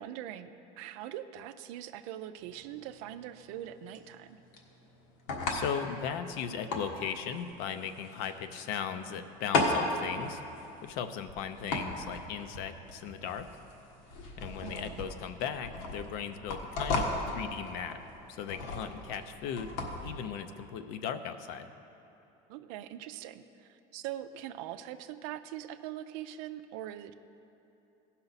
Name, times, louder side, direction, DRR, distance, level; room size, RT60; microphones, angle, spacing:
voice 1, 0.0-4.4 14.6-15.1 22.5-27.1, right 11 dB, 80° right, 11 dB, 0.5 m, -42 dB
sound 1, 2.4-20.1, left 2 dB, 80° left, 1.4 m, -36 dB
voice 2, 5.5-10.4 10.8-13.5 14.4-17.1 17.3-17.9 18.3-19.8 20.0-21.7, left 8 dB, 65° left, 9 dB, 0.6 m, -37 dB
16.0 x 5.7 x 4.0 m, 3.0 s
cardioid pair, 135°, 17 cm